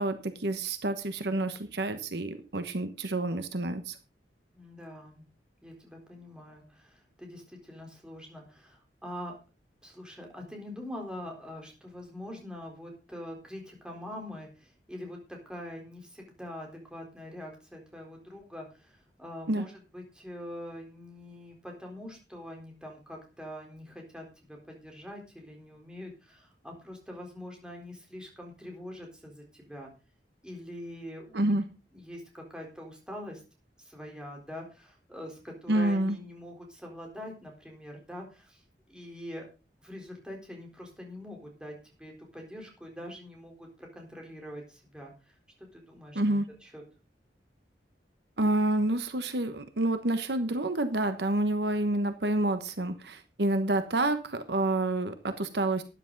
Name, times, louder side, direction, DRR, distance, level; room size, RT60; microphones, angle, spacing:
voice 1, 0.0-4.0 19.5-19.6 31.3-31.6 35.7-36.2 46.1-46.4 48.4-55.8, right 1 dB, 70° right, 9 dB, 1.2 m, -28 dB
voice 2, 4.5-5.2 5.6-9.4 9.8-29.9 30.4-31.6 31.9-33.4 33.8-38.6 38.9-39.5 39.8-45.3 45.7-46.8, left 1 dB, 5° right, 0 dB, 4.0 m, -44 dB
13.0 x 10.5 x 4.0 m, 0.31 s
head